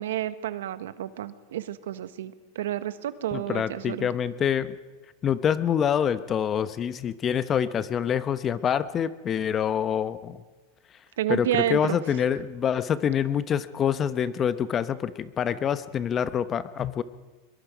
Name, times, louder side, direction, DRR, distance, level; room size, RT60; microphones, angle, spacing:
voice 1, 0.0-4.1 11.2-12.0, right 12 dB, 80° right, 13 dB, 1.1 m, -30 dB
voice 2, 3.3-4.8 5.2-10.4 11.3-17.0, left 8 dB, 30° left, 13 dB, 0.9 m, -26 dB
23.0 x 22.0 x 5.2 m, 1.3 s
hypercardioid pair, 120°, 0 cm